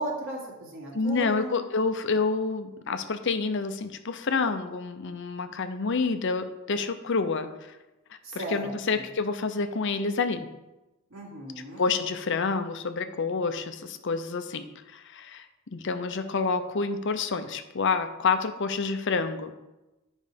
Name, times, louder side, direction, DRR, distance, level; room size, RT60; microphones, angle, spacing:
voice 1, 0.0-1.6 8.2-9.1 11.1-11.8, right 1 dB, 65° right, -3 dB, 2.7 m, -36 dB
voice 2, 0.9-7.5 8.3-10.5 11.8-15.5 15.7-19.5, left 4 dB, 60° left, 9 dB, 0.7 m, -28 dB
9.6 x 5.3 x 5.1 m, 1.0 s
head